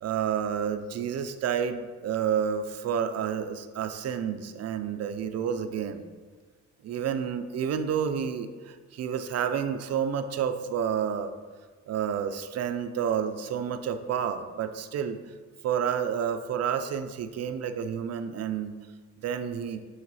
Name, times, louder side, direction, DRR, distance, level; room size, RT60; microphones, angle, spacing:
voice 1, 0.0-6.1 6.8-11.3 11.9-15.2 15.6-18.7 19.2-19.8, right 8 dB, 55° right, 9 dB, 0.5 m, -30 dB
5.7 x 4.7 x 4.1 m, 1.5 s
cardioid pair, 90°, 30 cm